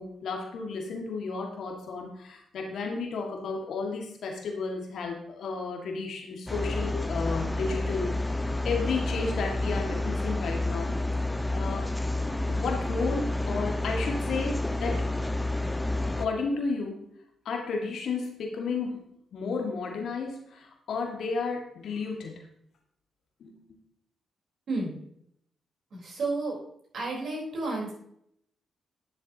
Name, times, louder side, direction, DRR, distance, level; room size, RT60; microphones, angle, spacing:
voice 1, 0.0-8.4 8.6-11.0 11.5-11.9 12.5-15.1 16.2-17.0 17.4-22.4 23.4-23.8, left 4 dB, 70° left, 2 dB, 1.8 m, -33 dB
sound 1, 6.5-16.3, left 2 dB, 15° left, 0.8 m, -29 dB
voice 2, 25.9-26.6 26.9-27.9, right 3 dB, 65° right, -2 dB, 3.8 m, -31 dB
11.0 x 6.9 x 2.8 m, 0.71 s
hypercardioid pair, 45°, 0 cm